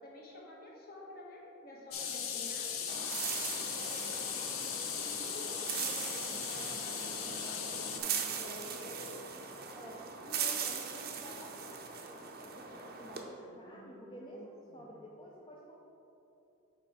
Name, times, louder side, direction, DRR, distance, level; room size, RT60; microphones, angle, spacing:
voice 1, 0.0-2.9 3.7-5.5 5.8-9.2 13.4-15.0, left 1 dB, 45° left, -4 dB, 1.3 m, -50 dB
sound 1, 1.9-8.0, left 7 dB, 70° left, 0.6 m, -38 dB
voice 2, 1.9-2.6 3.4-4.2 9.7-12.0 12.4-15.8, equal, 20° left, -4 dB, 0.5 m, -51 dB
sound 2, 2.9-13.2, right 6 dB, 45° right, 0.6 m, -40 dB
6.6 x 4.1 x 4.8 m, 3.0 s
head